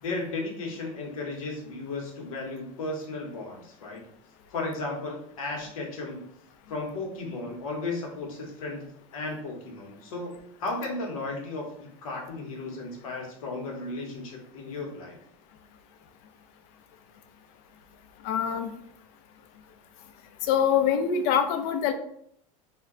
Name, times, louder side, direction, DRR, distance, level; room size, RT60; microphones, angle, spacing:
voice 1, 0.0-4.0 4.5-6.3 6.7-10.3 10.6-15.2, left 2 dB, 85° left, 0 dB, 0.9 m, -35 dB
voice 2, 18.2-18.7 20.5-21.9, left 8 dB, 60° left, 8 dB, 0.5 m, -24 dB
2.2 x 2.2 x 3.6 m, 0.69 s
hypercardioid pair, 95°, 17 cm